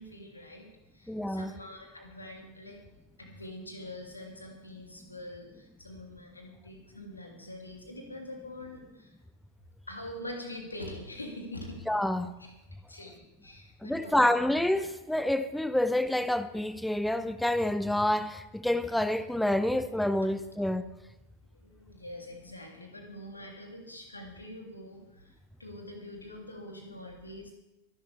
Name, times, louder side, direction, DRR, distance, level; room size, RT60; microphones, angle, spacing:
voice 1, 0.0-2.8 3.2-9.1 9.9-11.8 12.4-12.5 12.9-14.4 21.5-27.5, left 1 dB, 80° left, 3.0 m, -44 dB
voice 2, 1.1-1.5 11.9-12.3 13.8-20.9, left 1 dB, 5° left, 0.5 m, -28 dB
23.0 x 11.5 x 3.5 m
figure-of-eight pair, 90°, 0 cm